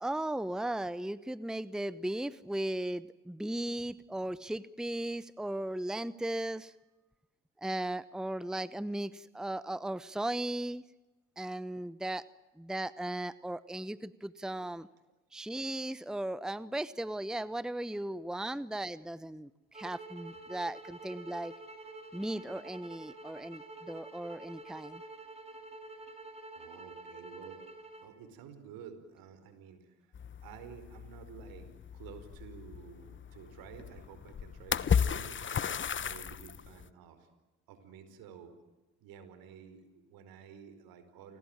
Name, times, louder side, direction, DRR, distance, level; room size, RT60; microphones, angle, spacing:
voice 1, 0.0-6.7 7.6-10.8 11.4-12.2 12.6-14.9 15.3-21.5 22.1-25.0, right 1 dB, ahead, 17 dB, 1.0 m, -37 dB
sound 1, 19.7-28.1, right 2 dB, 15° right, 6.6 m, -48 dB
voice 2, 26.5-27.6 28.0-29.9 30.4-37.3 37.7-38.5 39.0-41.4, right 7 dB, 70° right, 10 dB, 5.0 m, -51 dB
sound 2, 30.1-36.8, left 7 dB, 30° left, 1.1 m, -35 dB
29.5 x 20.5 x 9.1 m, 1.1 s
hypercardioid pair, 60°, 36 cm